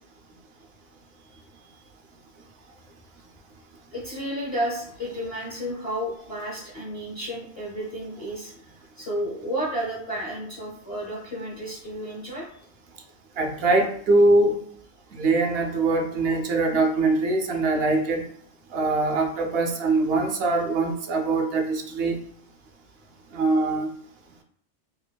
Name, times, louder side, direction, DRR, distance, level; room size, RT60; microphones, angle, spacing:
voice 1, 1.3-1.7 3.9-8.7 9.0-12.6, equal, 35° left, -3 dB, 0.7 m, -32 dB
voice 2, 13.4-14.6 15.1-18.2 18.7-22.2 23.3-23.9, right 2 dB, 65° right, 3 dB, 0.8 m, -22 dB
5.0 x 2.5 x 2.2 m, 0.63 s
omnidirectional pair, 1.1 m